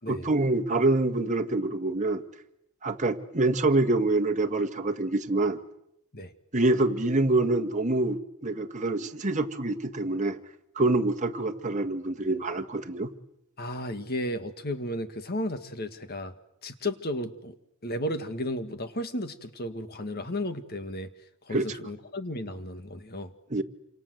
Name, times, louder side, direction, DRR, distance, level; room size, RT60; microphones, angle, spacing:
voice 1, 0.1-2.2 2.8-5.6 6.5-10.4 10.8-13.1 21.5-21.7 23.5-23.6, right 2 dB, 35° right, 4 dB, 1.7 m, -26 dB
voice 2, 13.6-16.3 16.6-17.5 17.8-21.1 21.4-23.3, left 1 dB, 45° left, 9 dB, 1.9 m, -34 dB
28.0 x 26.5 x 7.9 m, 0.82 s
head